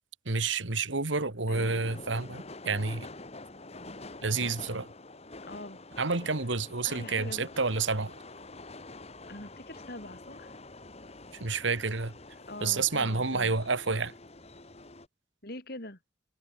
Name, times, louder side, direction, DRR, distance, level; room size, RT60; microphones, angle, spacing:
voice 1, 0.3-3.1 4.2-4.9 6.0-8.1 11.4-12.1 12.6-14.1, right 4 dB, 80° right, 1.9 m, -29 dB
voice 2, 1.5-1.9 2.3-2.4 5.5-5.8 6.8-7.5 9.3-10.5 12.5-13.6 15.4-16.0, left 1 dB, 55° left, 6.0 m, -43 dB
sound 1, 1.5-15.1, left 2 dB, 35° left, 2.0 m, -47 dB
head